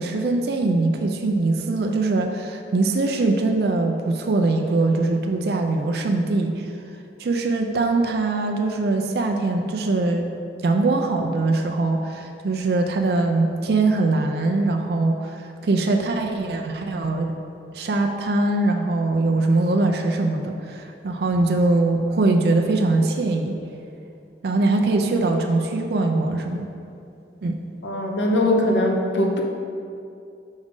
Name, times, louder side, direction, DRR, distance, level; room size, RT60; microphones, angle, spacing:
voice 1, 0.0-6.7 7.2-10.3 10.6-17.4 17.7-23.6 24.4-26.7 27.4-27.6, right 2 dB, 60° right, 3 dB, 0.4 m, -22 dB
voice 2, 27.8-29.4, left 1 dB, 85° left, 1 dB, 0.7 m, -21 dB
5.2 x 4.9 x 3.7 m, 2.5 s
head